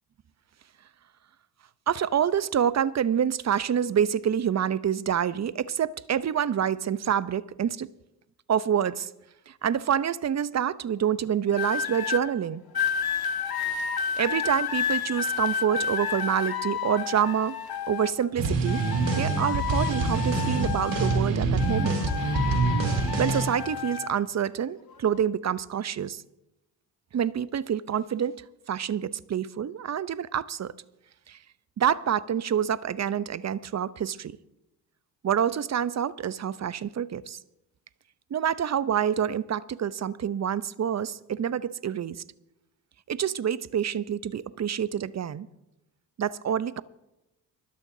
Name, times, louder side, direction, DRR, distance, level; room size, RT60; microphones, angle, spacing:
voice 1, 1.9-7.9 8.5-9.1 9.5-12.6 14.2-17.6 17.9-18.8 19.2-22.0 23.2-26.2 27.1-28.4 28.7-30.7 31.3-31.4 31.8-34.3 35.2-37.4 38.3-42.2 43.1-45.5 46.2-46.8, right 8 dB, 35° right, 0.7 m, -27 dB
sound 1, 11.5-12.2 12.7-18.3 18.6-21.3 21.6-24.1 24.9-25.2, left 7 dB, 45° left, 1.8 m, -31 dB
sound 2, 18.4-23.5, right 3 dB, 60° right, 3.3 m, -26 dB
26.5 x 12.5 x 2.8 m
hypercardioid pair, 50°, 50 cm